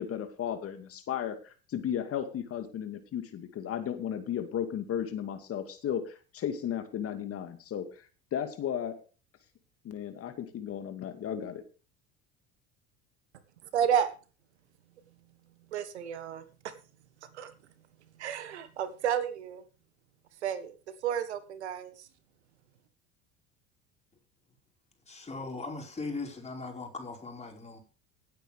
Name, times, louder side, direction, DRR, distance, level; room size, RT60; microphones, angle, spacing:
voice 1, 0.0-8.1 8.3-9.0 9.8-11.6, left 9 dB, 45° left, 2.3 m, -34 dB
voice 2, 13.7-14.1 15.7-16.4 17.3-17.5 18.2-19.6 20.4-20.7 21.0-21.9, right 8 dB, 85° right, 1.5 m, -31 dB
voice 3, 25.1-27.8, left 3 dB, 20° left, 5.0 m, -39 dB
17.0 x 9.2 x 3.5 m
hypercardioid pair, 75°, 33 cm